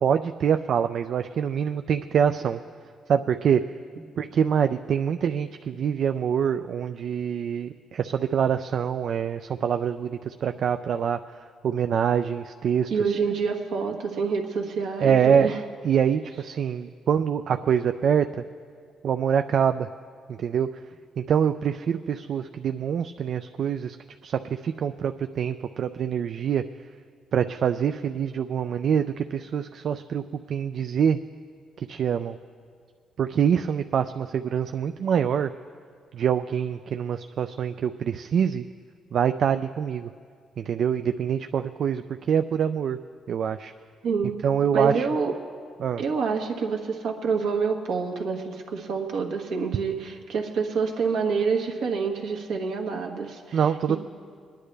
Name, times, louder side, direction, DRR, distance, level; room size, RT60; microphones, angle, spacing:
voice 1, 0.0-2.6 3.1-3.6 4.2-11.2 11.6-13.1 15.0-15.5 15.8-18.4 19.0-19.9 20.3-20.7 21.2-24.0 24.2-26.6 27.3-30.2 30.5-31.2 31.8-32.4 33.2-35.5 36.1-38.6 39.1-40.1 40.6-43.0 43.3-43.7 44.4-45.1 45.8-46.0 53.5-54.0, right 8 dB, 60° right, 8 dB, 0.3 m, -25 dB
voice 2, 12.9-15.6 44.0-44.4 44.7-45.4 46.0-54.0, right 5 dB, 80° right, 2 dB, 1.4 m, -27 dB
22.0 x 10.0 x 3.3 m, 2.1 s
cardioid pair, 90°, 0 cm